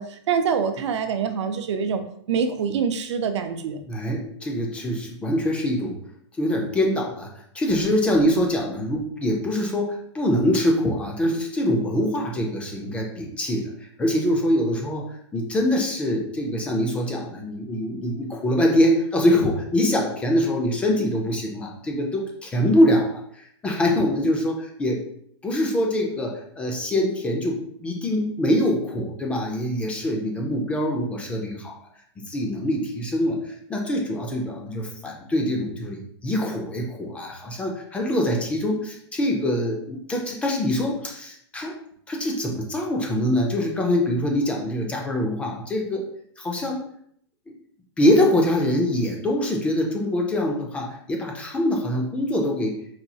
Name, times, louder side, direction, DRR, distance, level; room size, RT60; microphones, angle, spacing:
voice 1, 0.0-2.0 2.3-3.8, right 6 dB, 75° right, 8 dB, 0.5 m, -25 dB
voice 2, 3.9-6.0 6.4-7.3 7.5-25.0 25.4-31.8 32.3-41.7 42.1-46.1 46.4-46.8 47.5-47.6 48.0-52.8, left 1 dB, 10° left, 0 dB, 0.3 m, -24 dB
4.1 x 2.3 x 2.7 m, 0.67 s
supercardioid pair, 160°, 15 cm